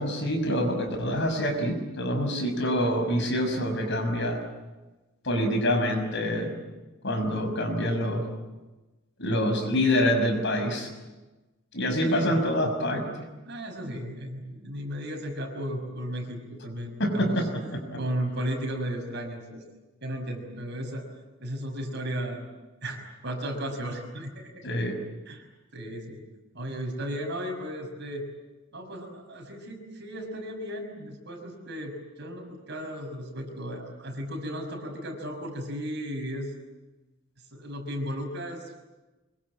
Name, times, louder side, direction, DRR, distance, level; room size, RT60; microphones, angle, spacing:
voice 1, 0.0-4.4 5.2-6.5 7.0-8.2 9.2-10.9 11.7-13.0 17.0-17.3 24.6-25.0, equal, 60° left, 5 dB, 6.0 m, -26 dB
voice 2, 12.0-12.3 13.5-17.4 17.9-19.6 20.0-21.1 21.4-22.5 22.8-24.5 25.3-25.4 25.7-26.2 26.5-28.3 28.7-36.5 37.5-38.9, equal, 60° right, 3 dB, 6.1 m, -35 dB
25.0 x 23.5 x 8.7 m, 1.1 s
head